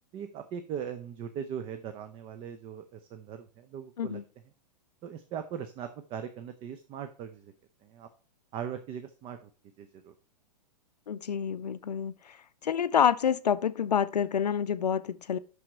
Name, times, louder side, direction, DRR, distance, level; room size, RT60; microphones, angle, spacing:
voice 1, 0.1-4.2 5.0-7.5 7.8-8.1 8.5-9.5 9.8-10.1, right 8 dB, 25° right, 0.6 m, -39 dB
voice 2, 11.1-12.4 12.6-15.4, left 8 dB, 75° left, 0.5 m, -28 dB
6.2 x 5.9 x 4.5 m
figure-of-eight pair, 110°, 21 cm